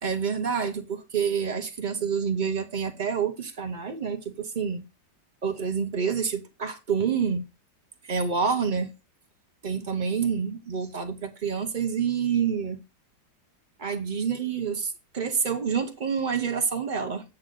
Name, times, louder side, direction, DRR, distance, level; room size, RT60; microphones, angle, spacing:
voice 1, 0.0-4.8 5.4-7.5 8.0-8.9 9.6-12.8 13.8-17.2, right 6 dB, 40° right, 0.7 m, -28 dB
8.6 x 6.5 x 3.8 m
omnidirectional pair, 2.0 m